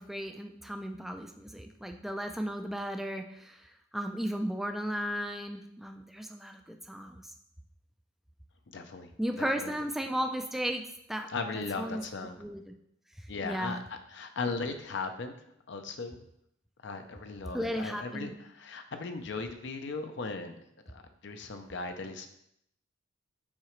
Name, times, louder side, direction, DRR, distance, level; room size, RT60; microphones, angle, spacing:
voice 1, 0.0-7.3 9.2-11.3 11.5-12.0 12.4-12.7 13.2-13.8 17.5-18.3, equal, ahead, 4 dB, 0.3 m, -35 dB
voice 2, 8.7-9.7 11.3-12.4 13.3-15.3 15.7-16.2 16.8-20.6 20.9-22.3, left 4 dB, 60° left, 6 dB, 0.5 m, -38 dB
7.3 x 4.8 x 3.1 m, 0.76 s
head